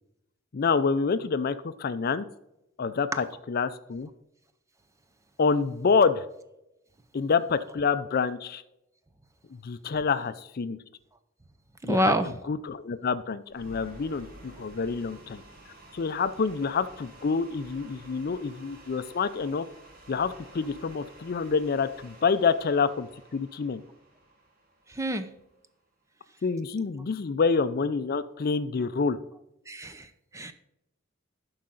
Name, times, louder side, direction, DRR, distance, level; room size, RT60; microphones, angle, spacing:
voice 1, 0.5-2.2 2.8-4.1 5.4-6.2 7.1-8.6 9.5-10.8 11.8-12.1 12.5-15.4 15.9-19.7 20.1-23.8 26.4-29.2, left 5 dB, 45° left, 13 dB, 0.4 m, -27 dB
voice 2, 11.9-12.3 24.9-25.3 29.7-30.1 30.3-30.5, equal, 15° right, 10 dB, 0.5 m, -26 dB
sound 1, 13.5-25.6, right 1 dB, 45° right, 2.2 m, -51 dB
11.5 x 4.8 x 3.9 m, 0.87 s
head